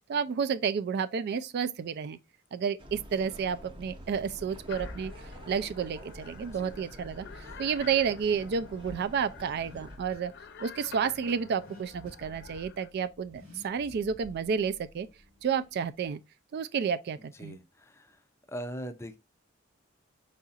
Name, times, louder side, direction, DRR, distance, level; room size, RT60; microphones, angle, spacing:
voice 1, 0.1-2.2 2.5-5.1 5.5-10.3 10.6-15.1 15.4-16.2 16.5-17.6, right 6 dB, 50° right, 0.3 m, -31 dB
sound 1, 2.8-10.0, equal, 25° right, 0.7 m, -47 dB
sound 2, 4.7-12.9, left 6 dB, 60° left, 0.7 m, -50 dB
Car / Accelerating revving vroom, 6.9-16.1, left 1 dB, 80° right, 2.0 m, -54 dB
voice 2, 17.2-18.2 18.5-19.2, equal, 15° left, 0.5 m, -41 dB
4.6 x 4.2 x 2.4 m
head